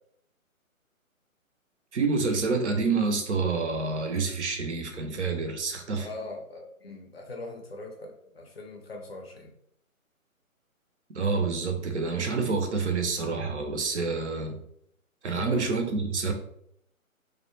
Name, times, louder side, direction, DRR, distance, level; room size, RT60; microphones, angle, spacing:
voice 1, 1.9-6.1 11.1-14.6 15.2-16.3, right 4 dB, 55° right, 4 dB, 0.5 m, -28 dB
voice 2, 6.0-9.5 15.3-15.8, left 2 dB, 45° left, 2 dB, 0.5 m, -40 dB
2.3 x 2.1 x 2.8 m, 0.71 s
figure-of-eight pair, 145°, 42 cm